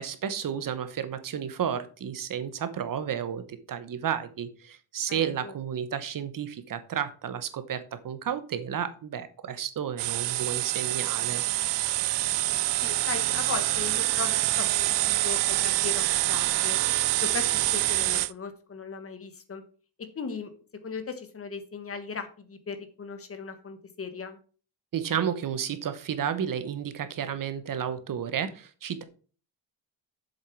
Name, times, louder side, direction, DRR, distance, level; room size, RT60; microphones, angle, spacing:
voice 1, 0.0-11.4 24.9-29.0, right 8 dB, 50° right, 11 dB, 1.1 m, -32 dB
voice 2, 5.1-5.5 12.8-16.8 17.2-17.4 17.7-19.6 20.1-20.5 20.8-24.4, left 5 dB, 35° left, 9 dB, 1.4 m, -37 dB
sound 1, 10.0-18.3, right 17 dB, 90° right, 0.5 m, -26 dB
7.8 x 7.4 x 4.6 m, 0.39 s
wide cardioid pair, 175°, 41 cm